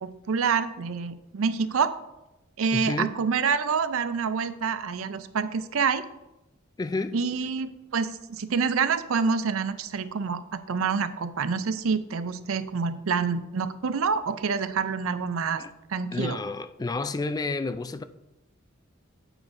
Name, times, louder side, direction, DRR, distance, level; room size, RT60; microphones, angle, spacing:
voice 1, 0.0-1.9 2.6-6.0 7.1-15.6 15.9-16.4, right 5 dB, 85° right, 0.5 m, -27 dB
voice 2, 2.7-3.1 6.8-7.2 15.6-15.7 16.1-18.0, left 3 dB, 20° left, 0.3 m, -30 dB
8.9 x 8.0 x 2.6 m
head